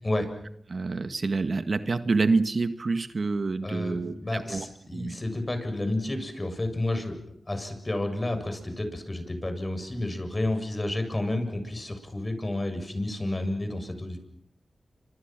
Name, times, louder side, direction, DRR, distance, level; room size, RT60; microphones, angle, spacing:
voice 1, 0.7-4.7 4.9-5.2, right 3 dB, 60° right, 10 dB, 1.6 m, -27 dB
voice 2, 3.6-7.2 7.5-14.2, left 1 dB, 35° left, 7 dB, 7.4 m, -31 dB
29.5 x 26.0 x 6.1 m, 0.72 s
cardioid pair, 40°, 0 cm